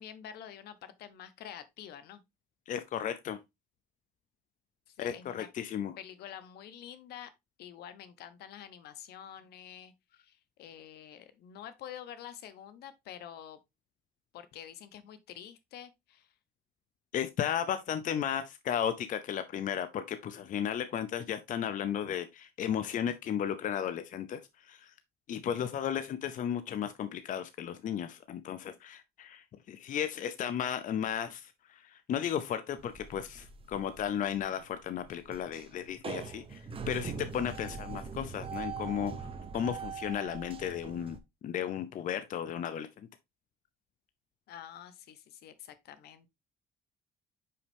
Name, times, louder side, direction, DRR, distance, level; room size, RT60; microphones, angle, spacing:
voice 1, 0.0-2.2 4.9-5.5 6.0-7.3 7.6-13.6 14.3-16.3 44.5-46.3, left 10 dB, 75° left, 1.0 m, -48 dB
voice 2, 2.7-3.4 5.0-5.9 17.1-24.9 25.3-36.6 36.9-39.3 39.5-43.1, left 9 dB, 50° left, 0.6 m, -34 dB
sound 1, 32.8-41.2, right 5 dB, 35° right, 1.0 m, -42 dB
5.6 x 5.4 x 3.4 m
cardioid pair, 110°, 17 cm